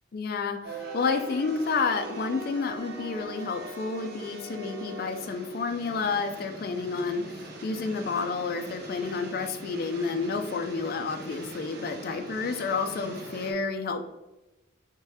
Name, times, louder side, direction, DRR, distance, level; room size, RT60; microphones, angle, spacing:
voice 1, 0.1-14.0, left 4 dB, 50° left, 5 dB, 0.3 m, -30 dB
sound 1, 0.6-13.5, right 2 dB, 55° right, 0.7 m, -42 dB
3.8 x 3.5 x 2.7 m, 1.0 s
head